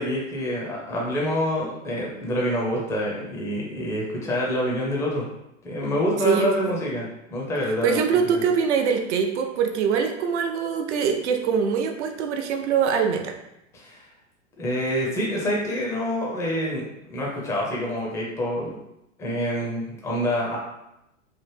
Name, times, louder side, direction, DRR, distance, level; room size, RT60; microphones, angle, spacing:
voice 1, 0.0-5.2 5.6-8.4 13.7-14.1 14.6-18.8 19.2-20.6, equal, 5° left, -3 dB, 0.4 m, -27 dB
voice 2, 6.2-6.7 7.8-13.4, right 6 dB, 60° right, 4 dB, 0.5 m, -23 dB
3.1 x 2.0 x 3.1 m, 0.86 s
hypercardioid pair, 110°, 39 cm